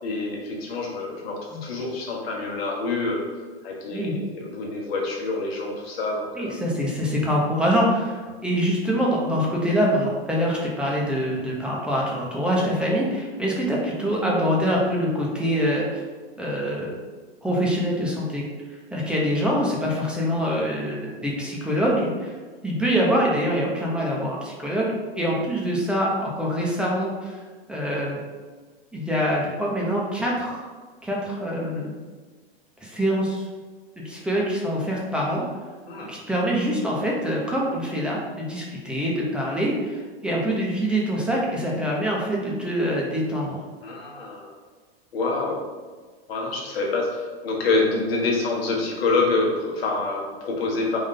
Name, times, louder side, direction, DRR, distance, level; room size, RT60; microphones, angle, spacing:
voice 1, 0.0-3.2 3.6-6.5 35.9-36.1 43.8-44.5 45.1-45.6 46.3-51.0, left 3 dB, 70° left, -1 dB, 1.2 m, -26 dB
voice 2, 6.4-16.0 16.4-17.0 17.4-18.5 18.9-22.3 22.6-27.4 27.7-28.2 28.9-30.7 31.0-31.9 32.8-33.5 34.0-35.4 36.1-43.6, equal, 5° right, -4 dB, 0.7 m, -25 dB
3.7 x 2.6 x 3.7 m, 1.4 s
hypercardioid pair, 105°, 31 cm